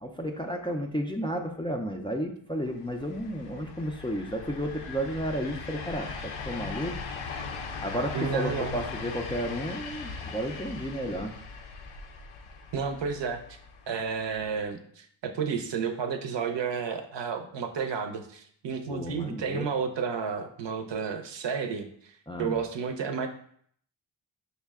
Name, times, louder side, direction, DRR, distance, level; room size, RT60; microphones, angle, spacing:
voice 1, 0.0-7.0 7.8-11.3 18.9-19.7 22.3-22.6, equal, 10° left, 3 dB, 0.4 m, -32 dB
sound 1, 2.7-14.6, left 4 dB, 85° left, 0.6 m, -40 dB
voice 2, 8.1-8.8 12.7-13.4 13.9-22.1 22.4-23.3, right 6 dB, 60° right, 5 dB, 0.7 m, -31 dB
5.5 x 2.1 x 3.4 m, 0.63 s
cardioid pair, 55°, 49 cm